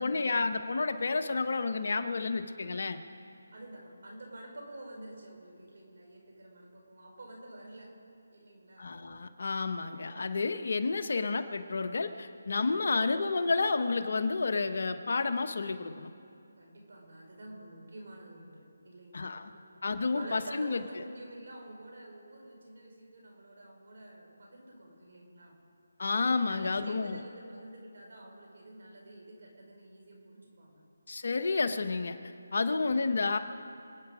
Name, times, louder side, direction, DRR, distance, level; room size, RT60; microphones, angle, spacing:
voice 1, 0.0-3.0 8.8-16.1 19.1-19.5 19.8-21.0 26.0-27.2 31.1-32.2 32.5-33.4, left 4 dB, 60° left, 8 dB, 1.2 m, -30 dB
voice 2, 3.5-7.9 8.3-8.9 16.6-19.7 20.1-25.6 26.5-30.8 32.6-33.0, right 1 dB, 60° right, 0 dB, 5.0 m, -48 dB
28.0 x 9.4 x 5.1 m, 2.5 s
figure-of-eight pair, 160°, 0 cm